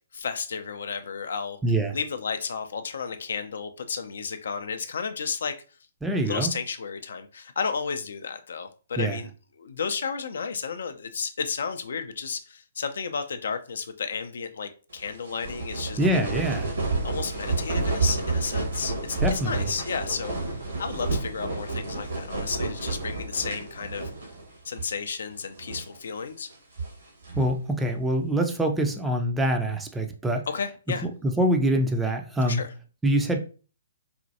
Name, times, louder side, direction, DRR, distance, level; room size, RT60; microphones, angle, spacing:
voice 1, 0.1-1.6 1.9-5.5 6.3-9.3 9.6-16.0 17.0-24.1 24.6-26.5 30.5-31.1 32.5-32.7, left 5 dB, 60° left, 9 dB, 0.4 m, -32 dB
voice 2, 1.6-2.0 6.0-6.5 9.0-9.2 16.0-16.7 19.2-19.6 27.4-30.5 31.0-32.6 33.0-33.4, right 1 dB, 5° right, 3 dB, 0.4 m, -25 dB
sound 1, 15.0-24.5 24.7-24.9 25.5-26.0 26.5-27.6, right 3 dB, 65° right, 1.3 m, -30 dB
4.1 x 2.2 x 2.7 m, 0.36 s
figure-of-eight pair, 125°, 0 cm